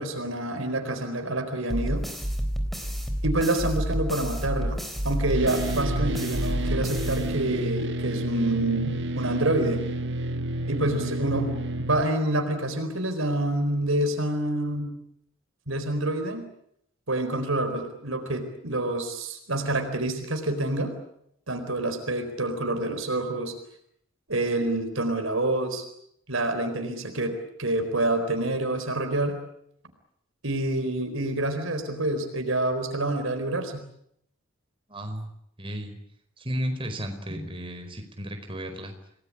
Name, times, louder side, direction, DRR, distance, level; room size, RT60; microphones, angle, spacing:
voice 1, 0.0-2.0 3.2-4.8 5.0-9.8 10.7-14.9 15.7-16.5 17.1-20.9 21.5-23.6 24.3-25.8 26.3-29.4 30.4-33.8, right 1 dB, 75° right, 7 dB, 4.3 m, -27 dB
sound 1, 1.7-7.8, equal, ahead, 3.7 m, -30 dB
sound 2, 5.3-12.0, right 1 dB, 60° right, 1.4 m, -30 dB
voice 2, 34.9-35.3 35.6-36.0 36.4-38.9, equal, 25° right, 5 dB, 4.7 m, -33 dB
28.5 x 19.5 x 8.7 m, 0.74 s
head